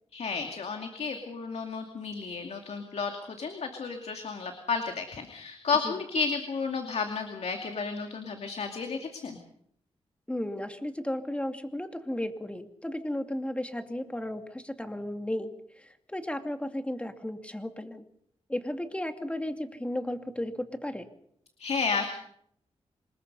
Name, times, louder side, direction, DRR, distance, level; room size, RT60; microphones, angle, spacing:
voice 1, 0.1-9.4 21.6-22.1, left 5 dB, 70° left, 4 dB, 2.5 m, -32 dB
voice 2, 10.3-18.0 18.5-21.1, left 1 dB, 10° left, 7 dB, 2.4 m, -34 dB
26.5 x 20.5 x 5.5 m, 0.70 s
cardioid pair, 65°, 11 cm